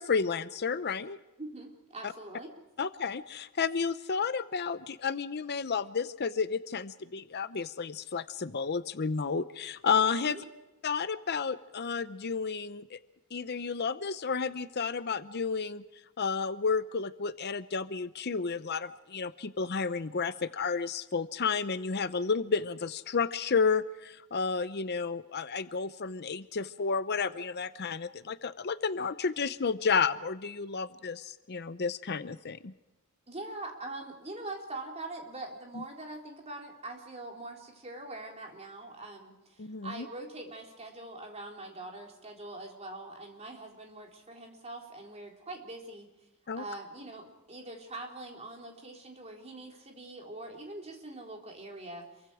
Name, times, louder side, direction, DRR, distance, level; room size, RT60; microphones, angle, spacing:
voice 1, 0.0-1.2 2.0-2.1 2.8-10.4 10.8-13.0 13.3-15.8 16.2-32.7 35.7-35.8 39.6-40.1 46.5-46.6, left 5 dB, 50° left, 13 dB, 0.7 m, -31 dB
voice 2, 1.4-2.5 10.3-10.4 33.3-46.1 46.5-52.3, right 2 dB, 30° right, 1 dB, 4.0 m, -43 dB
28.0 x 23.5 x 5.0 m, 1.0 s
head